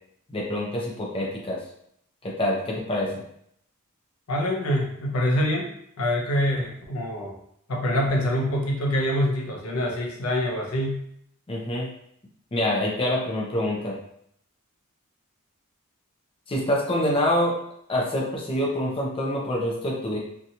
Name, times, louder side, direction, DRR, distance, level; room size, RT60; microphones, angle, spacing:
voice 1, 0.3-1.6 2.2-3.2 11.5-11.9 12.5-13.9 16.5-17.6 17.9-20.2, left 1 dB, 25° left, -3 dB, 0.5 m, -26 dB
voice 2, 4.3-5.7 6.0-7.4 7.7-11.0, left 1 dB, 70° left, 0 dB, 0.6 m, -25 dB
2.8 x 2.3 x 2.7 m, 0.70 s
head